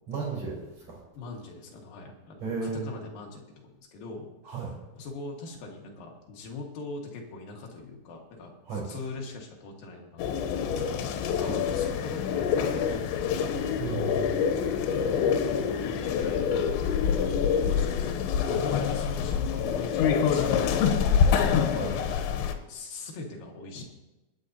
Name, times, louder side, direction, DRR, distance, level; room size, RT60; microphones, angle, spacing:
voice 1, 0.1-0.6 0.9-1.0 2.4-2.9 4.5-4.7 8.7-8.8 11.4-11.6 13.8-14.4 18.4-18.6 21.7-22.0, right 4 dB, 35° right, -4 dB, 4.8 m, -34 dB
voice 2, 1.1-3.4 3.8-13.4 14.9-21.8 22.1-23.8, left 3 dB, 60° left, 0 dB, 3.0 m, -42 dB
sound 1, 10.2-22.5, left 7 dB, 90° left, 3.2 m, -26 dB
24.5 x 9.2 x 2.8 m, 1.1 s
omnidirectional pair, 5.1 m